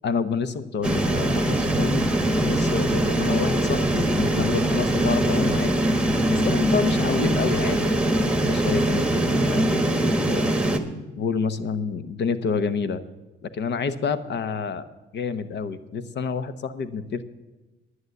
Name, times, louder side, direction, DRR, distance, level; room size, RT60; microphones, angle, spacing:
voice 1, 0.0-5.7 6.3-10.5 11.2-13.0 13.5-14.9 15.1-17.2, left 5 dB, 60° left, 12 dB, 0.9 m, -28 dB
sound 1, 0.8-10.8, right 1 dB, 5° right, 1.1 m, -22 dB
11.0 x 9.6 x 8.0 m, 1.1 s
cardioid pair, 90°, 20 cm